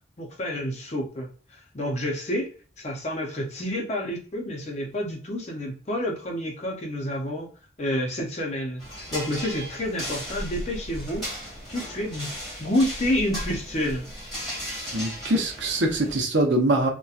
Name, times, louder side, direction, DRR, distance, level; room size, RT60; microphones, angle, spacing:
voice 1, 0.2-2.5 2.8-7.5 7.8-8.8 9.1-11.3 11.7-14.0, left 1 dB, 35° left, 0.6 m, -29 dB
sound 1, 8.8-16.2, equal, ahead, 1.3 m, -36 dB
voice 2, 14.9-16.9, right 1 dB, 70° right, 0.7 m, -23 dB
2.8 x 2.2 x 2.4 m
head